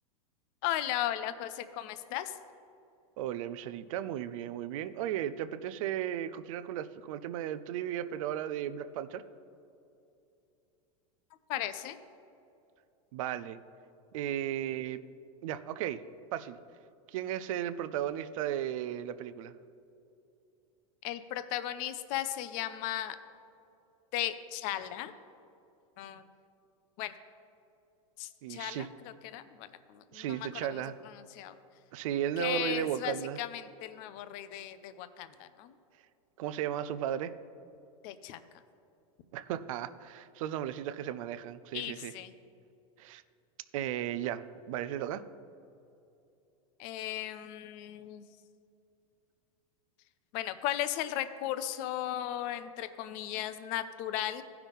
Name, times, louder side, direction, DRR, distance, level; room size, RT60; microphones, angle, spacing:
voice 1, 0.6-2.4 11.5-12.0 21.0-23.2 24.1-25.1 26.0-26.2 27.0-27.1 28.2-31.6 32.4-35.7 38.0-38.4 41.7-42.3 46.8-48.3 50.3-54.4, left 12 dB, 50° left, 12 dB, 0.6 m, -36 dB
voice 2, 3.2-9.2 13.1-13.6 14.1-15.0 15.4-16.0 16.3-16.6 17.1-19.5 28.4-28.9 30.1-31.0 31.9-33.4 36.4-37.3 39.3-42.1 43.0-43.2 43.7-45.2, right 11 dB, 70° right, 14 dB, 0.5 m, -35 dB
15.5 x 5.8 x 3.6 m, 2.6 s
supercardioid pair, 135°, 18 cm